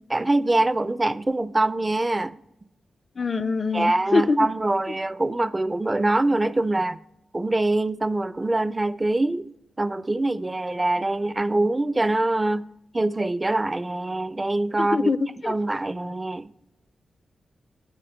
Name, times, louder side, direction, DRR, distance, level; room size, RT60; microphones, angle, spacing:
voice 1, 0.1-2.4 3.7-7.0 7.3-9.5 9.8-12.7 12.9-15.1 15.5-16.5, right 2 dB, 30° right, 0.4 m, -24 dB
voice 2, 3.2-4.5 14.8-15.2 15.4-15.5, left 4 dB, 45° left, 0.5 m, -23 dB
11.0 x 4.9 x 4.3 m
supercardioid pair, 40°, 0 cm